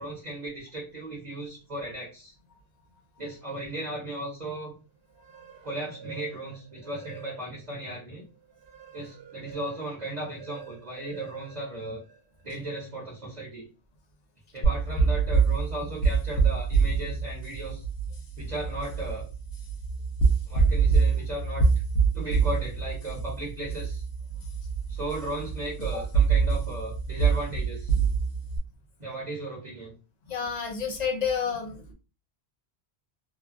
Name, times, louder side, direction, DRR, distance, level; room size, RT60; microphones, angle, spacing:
voice 1, 0.0-2.3 3.2-4.8 5.6-8.2 8.9-12.0 12.4-13.7 14.5-17.8 18.4-19.2 20.5-21.7 22.1-24.0 24.9-27.9 29.0-29.9, right 1 dB, 40° right, -3 dB, 1.0 m, -36 dB
sound 1, 5.0-7.7 8.2-12.5, right 7 dB, 90° right, 0.9 m, -47 dB
sound 2, 14.6-28.6, right 5 dB, 80° left, 1.0 m, -25 dB
voice 2, 30.3-31.9, left 6 dB, 50° left, 2 dB, 0.6 m, -30 dB
3.0 x 2.3 x 2.4 m, 0.32 s
omnidirectional pair, 1.1 m